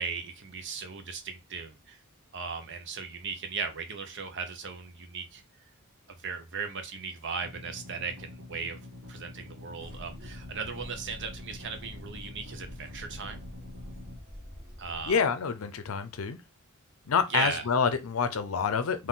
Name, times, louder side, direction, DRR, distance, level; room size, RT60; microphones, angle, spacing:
voice 1, 0.0-2.0 2.3-5.4 6.2-8.8 9.1-13.4 14.8-15.2 17.3-17.6, right 5 dB, 55° right, 0.7 m, -37 dB
sound 1, 7.4-14.2, left 2 dB, 90° right, 1.3 m, -46 dB
sound 2, 9.8-15.1, equal, 40° right, 1.3 m, -46 dB
voice 2, 15.1-16.4 17.1-19.1, left 6 dB, 70° left, 0.5 m, -27 dB
3.7 x 2.6 x 3.9 m
head